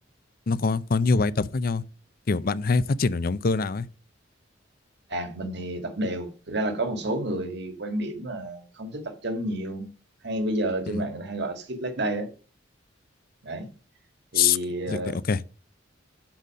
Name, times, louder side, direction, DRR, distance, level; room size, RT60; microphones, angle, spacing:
voice 1, 0.5-1.8 2.3-3.9 10.9-11.0 14.3-14.6 14.9-15.4, left 4 dB, 50° left, 0.5 m, -24 dB
voice 2, 5.1-9.9 10.2-12.3 13.4-13.7 14.3-15.2, right 1 dB, 60° right, 1.7 m, -30 dB
12.0 x 4.1 x 6.3 m
head